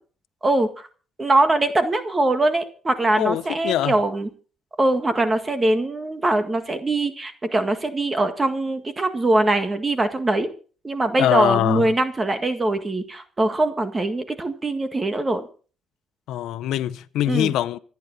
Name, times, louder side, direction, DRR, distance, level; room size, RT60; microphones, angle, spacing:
voice 1, 0.4-0.9 1.2-4.3 4.8-10.5 10.8-15.4 17.3-17.5, right 2 dB, 25° right, 1.8 m, -22 dB
voice 2, 3.2-3.9 11.2-11.9 16.3-17.8, left 13 dB, 85° left, 0.8 m, -23 dB
27.0 x 9.6 x 4.1 m
cardioid pair, 90°, 0 cm